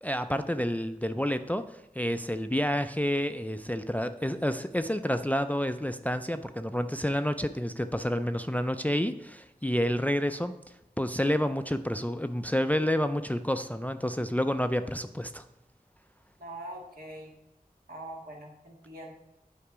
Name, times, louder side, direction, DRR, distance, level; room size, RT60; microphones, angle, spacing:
voice 1, 0.0-1.6 2.0-10.5 11.0-15.4, equal, 10° left, 9 dB, 0.4 m, -29 dB
voice 2, 16.4-17.3 17.9-19.1, right 1 dB, 70° right, -1 dB, 1.6 m, -43 dB
8.6 x 4.5 x 5.0 m, 0.89 s
wide cardioid pair, 45°, 16 cm